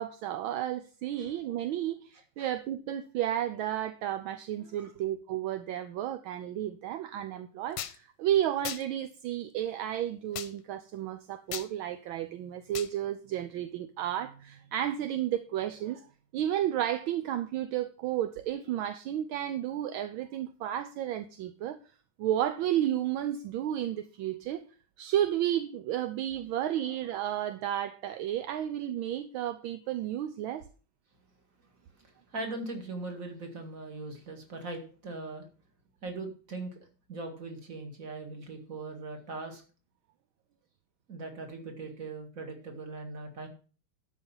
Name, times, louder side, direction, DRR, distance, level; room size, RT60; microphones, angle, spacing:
voice 1, 0.0-16.0 16.3-21.8 22.2-24.6 25.0-30.6, right 11 dB, 75° right, 1.4 m, -32 dB
sound 1, 7.8-8.0 8.6-8.8 10.3-10.5 11.5-11.7 12.7-12.9, left 10 dB, 65° left, 1.3 m, -36 dB
voice 2, 32.3-35.5 36.0-36.8 37.1-39.6 41.1-43.5, right 3 dB, 40° right, 2.4 m, -40 dB
12.0 x 5.4 x 5.5 m
omnidirectional pair, 2.3 m